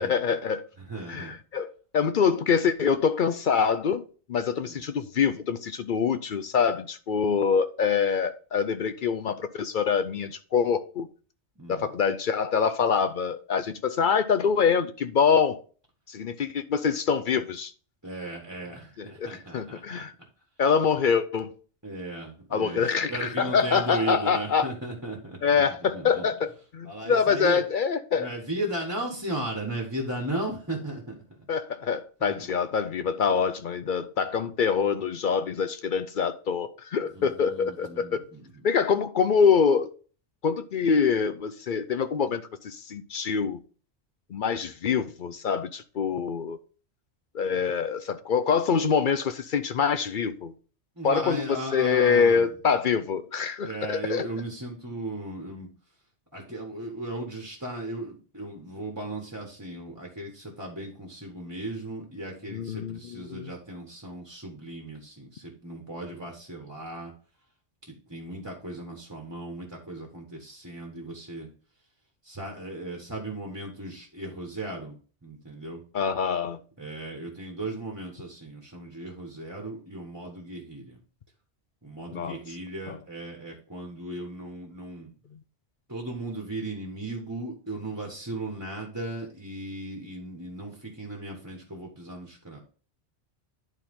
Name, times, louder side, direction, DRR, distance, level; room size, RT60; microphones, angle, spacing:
voice 1, 0.0-0.6 1.1-11.1 11.7-15.6 16.1-17.7 19.0-20.1 20.6-21.5 22.5-24.7 25.4-28.3 31.5-38.2 38.6-39.9 40.4-43.6 44.3-46.6 47.3-50.5 51.0-54.3 62.5-63.5 75.9-76.6 82.1-82.4 82.9-83.0, left 6 dB, 55° left, 0.6 m, -25 dB
voice 2, 0.8-1.4 4.7-4.8 11.6-11.9 18.0-20.1 21.8-25.4 25.9-26.3 26.8-27.6 28.1-31.4 32.2-32.5 37.1-38.6 47.5-47.6 51.0-52.5 53.6-55.7 56.3-67.1 67.8-71.5 72.2-74.9 75.2-75.8 76.8-81.0 81.8-85.1 85.9-92.6, right 1 dB, 15° right, 1.4 m, -36 dB
11.0 x 4.3 x 3.7 m
omnidirectional pair, 1.2 m